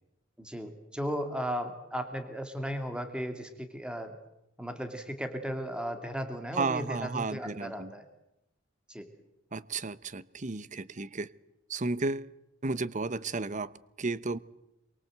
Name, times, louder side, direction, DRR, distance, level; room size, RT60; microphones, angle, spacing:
voice 1, 0.4-4.2 4.6-8.0 8.9-9.0, equal, 5° right, 2.7 m, -36 dB
voice 2, 6.5-7.9 9.5-11.3 11.7-12.3 12.6-14.4, right 3 dB, 40° right, 0.9 m, -33 dB
27.0 x 23.5 x 8.0 m
head